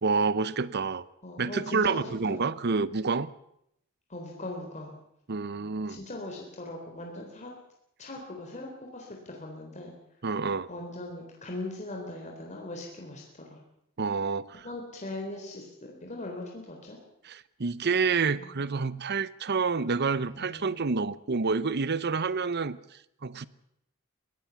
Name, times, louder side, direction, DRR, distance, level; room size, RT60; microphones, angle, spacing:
voice 1, 0.0-1.0 1.4-3.3 5.3-6.0 10.2-10.7 14.0-14.7 17.2-22.8 23.2-23.5, right 4 dB, 50° right, 0.8 m, -28 dB
voice 2, 1.2-2.5 4.1-4.9 5.8-7.5 8.0-9.9 10.7-13.6 14.6-17.0 18.3-18.6 20.3-21.0, left 2 dB, 35° left, 3.8 m, -40 dB
21.5 x 17.5 x 7.1 m
head